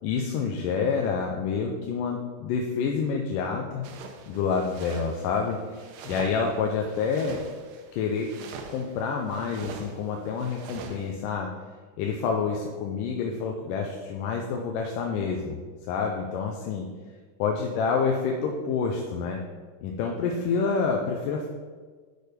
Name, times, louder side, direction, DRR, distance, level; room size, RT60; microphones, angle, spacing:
voice 1, 0.0-3.8 4.3-5.8 6.0-7.4 7.9-8.3 8.7-11.5 12.0-15.6 15.9-16.9 17.4-19.4 19.8-21.5, left 5 dB, 85° left, 2 dB, 2.3 m, -28 dB
sound 1, 3.8-11.1, right 5 dB, 85° right, 2.3 m, -44 dB
6.5 x 6.5 x 5.1 m, 1.5 s
omnidirectional pair, 3.7 m